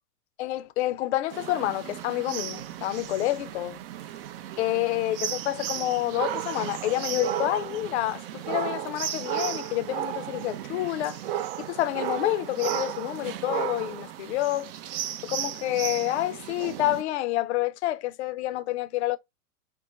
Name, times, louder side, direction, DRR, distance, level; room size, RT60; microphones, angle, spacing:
voice 1, 0.4-3.8 4.6-11.2 11.6-14.7 15.2-19.2, left 15 dB, 50° left, 0.5 m, -28 dB
sound 1, 1.3-17.0, right 11 dB, 40° right, 0.4 m, -34 dB
4.5 x 2.1 x 3.3 m
hypercardioid pair, 105°, 46 cm